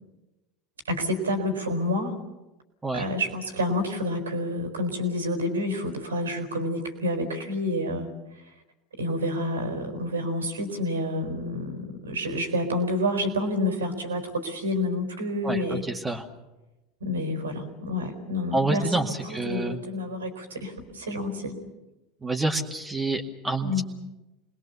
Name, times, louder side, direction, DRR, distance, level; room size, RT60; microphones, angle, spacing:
voice 1, 0.8-2.2 2.9-8.1 9.0-15.9 17.0-21.6 23.6-23.8, left 1 dB, 85° right, 6 dB, 4.4 m, -29 dB
voice 2, 15.4-16.2 18.5-19.8 22.2-23.8, right 2 dB, 15° right, 2 dB, 2.1 m, -28 dB
27.5 x 21.0 x 7.0 m, 1.0 s
hypercardioid pair, 75°, 0 cm